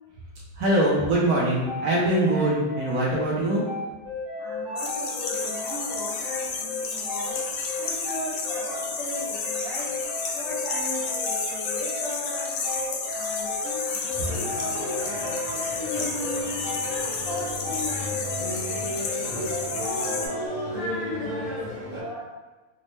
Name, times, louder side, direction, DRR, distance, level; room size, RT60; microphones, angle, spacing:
voice 1, 0.5-3.6, right 1 dB, 70° right, -5 dB, 0.9 m, -23 dB
Pixel Flute Melody Loop, 1.7-20.5, left 3 dB, 85° right, 1.9 m, -34 dB
voice 2, 4.4-22.3, left 1 dB, 55° left, -9 dB, 1.0 m, -37 dB
sound 1, 4.8-20.3, left 4 dB, 75° left, 1.3 m, -32 dB
sound 2, 14.1-22.0, equal, 50° right, 0.3 m, -34 dB
4.1 x 2.1 x 3.1 m, 1.2 s
omnidirectional pair, 2.3 m